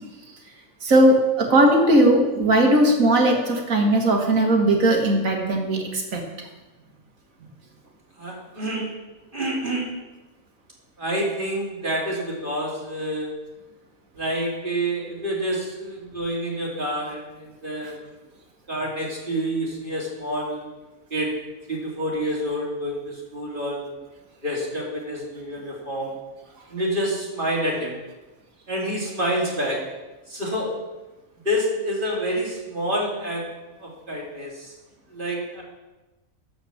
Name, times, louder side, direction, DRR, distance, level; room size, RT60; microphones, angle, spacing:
voice 1, 0.8-6.2, right 1 dB, 75° right, 1 dB, 2.1 m, -18 dB
voice 2, 8.2-8.8 9.3-9.9 11.0-13.3 14.1-18.0 18.7-20.7 21.1-21.3 21.7-23.9 24.4-26.1 26.7-28.0 28.7-29.8 30.3-30.7 31.4-33.4 33.8-34.7 35.1-35.6, equal, 35° right, -3 dB, 2.8 m, -28 dB
12.5 x 5.2 x 7.1 m, 1.1 s
omnidirectional pair, 1.4 m